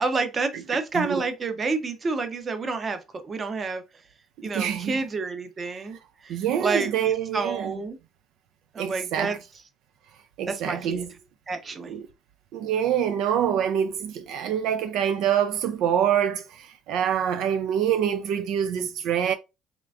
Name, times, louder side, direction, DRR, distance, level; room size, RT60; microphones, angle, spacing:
voice 1, 0.0-3.8 4.4-6.0 6.2-8.0 8.7-9.4 10.5-11.0 11.5-11.9, right 4 dB, 25° right, 0.7 m, -29 dB
voice 2, 0.5-1.2 4.4-5.0 6.3-7.8 8.8-9.4 10.4-11.1 11.8-12.1 12.5-19.3, right 9 dB, 70° right, 0.3 m, -26 dB
3.7 x 3.3 x 2.4 m
cardioid pair, 130°, 0 cm